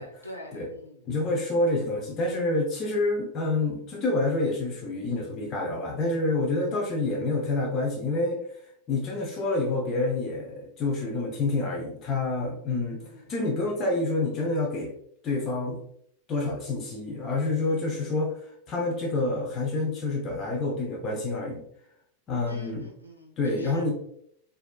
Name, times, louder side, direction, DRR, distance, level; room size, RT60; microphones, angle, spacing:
voice 1, 0.0-1.1 13.0-13.3 17.6-18.2 22.4-23.9, left 1 dB, 90° left, -1 dB, 0.7 m, -45 dB
voice 2, 1.1-8.4 8.9-13.0 13.3-14.9 15.2-15.8 16.3-18.3 18.7-21.6 22.3-22.9 23.4-23.9, left 2 dB, 30° left, -1 dB, 0.7 m, -27 dB
4.2 x 2.7 x 2.3 m, 0.67 s
figure-of-eight pair, 90°, 0 cm